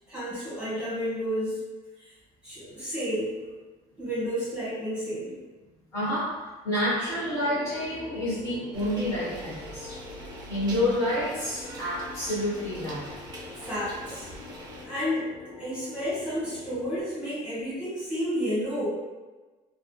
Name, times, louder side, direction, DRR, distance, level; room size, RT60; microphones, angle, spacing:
voice 1, 0.1-1.6 2.0-2.1 2.4-3.3 4.0-5.4 13.5-14.3 14.8-15.3 15.6-18.9, equal, 10° right, -11 dB, 1.5 m, -31 dB
voice 2, 5.9-6.3 6.6-10.0 10.5-13.1, left 1 dB, 25° left, -12 dB, 1.2 m, -28 dB
sound 1, 7.1-17.0, left 4 dB, 85° left, 0.5 m, -44 dB
sound 2, 8.7-14.9, right 2 dB, 30° right, 0.5 m, -44 dB
3.5 x 2.3 x 2.3 m, 1.3 s
cardioid pair, 175°, 14 cm